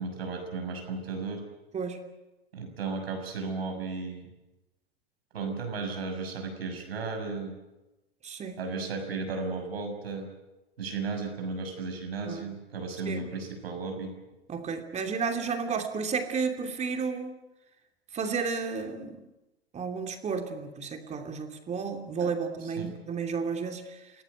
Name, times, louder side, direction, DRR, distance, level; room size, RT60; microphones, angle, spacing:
voice 1, 0.0-1.4 2.5-4.3 5.3-7.6 8.6-10.3 10.8-14.2 22.2-22.3 22.6-22.9, right 4 dB, 70° right, 4 dB, 6.5 m, -34 dB
voice 2, 8.2-8.6 12.3-12.4 13.1-13.3 14.5-17.4 18.1-19.2 19.7-24.1, right 5 dB, 20° right, 6 dB, 2.9 m, -32 dB
27.5 x 18.5 x 8.1 m, 1.0 s
figure-of-eight pair, 100°, 31 cm